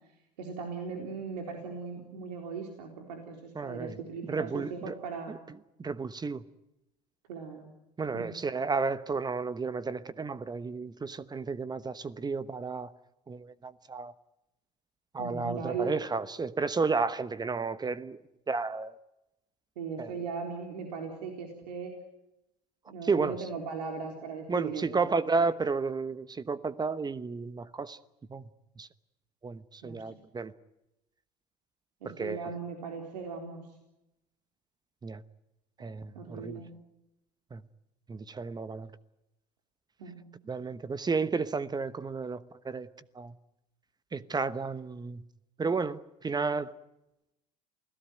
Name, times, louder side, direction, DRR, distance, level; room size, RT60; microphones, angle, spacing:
voice 1, 0.4-5.4 7.3-7.7 8.1-8.3 15.2-15.9 19.8-21.9 22.9-25.5 29.8-30.0 32.0-33.7 36.1-36.8 40.0-40.2, right 5 dB, 80° right, 3.8 m, -38 dB
voice 2, 3.5-4.0 4.3-4.9 5.3-6.4 8.0-12.9 13.3-14.1 15.1-18.2 18.5-18.9 20.0-20.1 23.0-23.5 24.5-28.0 28.3-28.4 28.8-28.9 29.4-30.5 32.0-32.4 35.0-35.2 35.8-36.6 37.5-37.6 38.1-38.9 40.5-42.9 43.1-43.3 44.1-45.2 45.6-46.7, right 4 dB, 20° right, 1.0 m, -32 dB
28.5 x 17.5 x 9.2 m
hypercardioid pair, 80°, 21 cm